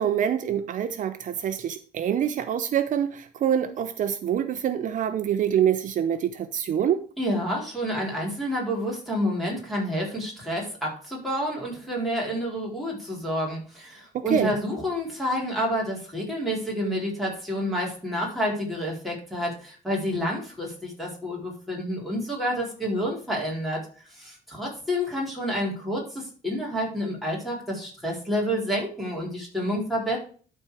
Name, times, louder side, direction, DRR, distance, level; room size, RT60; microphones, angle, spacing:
voice 1, 0.0-7.0 14.1-14.5, right 9 dB, 60° right, 10 dB, 0.7 m, -25 dB
voice 2, 7.2-23.9 24.1-30.2, equal, ahead, -4 dB, 4.1 m, -29 dB
12.0 x 4.4 x 4.8 m, 0.41 s
cardioid pair, 130°, 15 cm